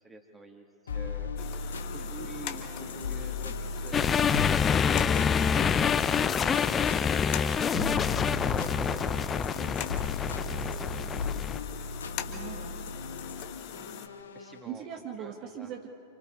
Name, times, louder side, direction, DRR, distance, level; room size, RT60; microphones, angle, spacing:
voice 1, 0.0-1.3 1.9-5.6 6.1-7.2 8.3-10.0 10.7-11.0 12.2-12.6 13.8-13.9 14.3-14.8 15.2-15.7, right 2 dB, 10° right, 3 dB, 2.5 m, -48 dB
sound 1, 0.9-14.7, left 4 dB, 70° left, 1.3 m, -37 dB
sound 2, 1.4-14.1, left 10 dB, 45° left, 1.5 m, -42 dB
sound 3, 3.9-11.6, left 7 dB, 20° left, 0.6 m, -27 dB
voice 2, 7.7-8.2 12.2-12.8 14.6-15.9, right 9 dB, 40° right, 2 dB, 1.6 m, -40 dB
29.5 x 27.5 x 3.9 m, 2.4 s
figure-of-eight pair, 90°, 0 cm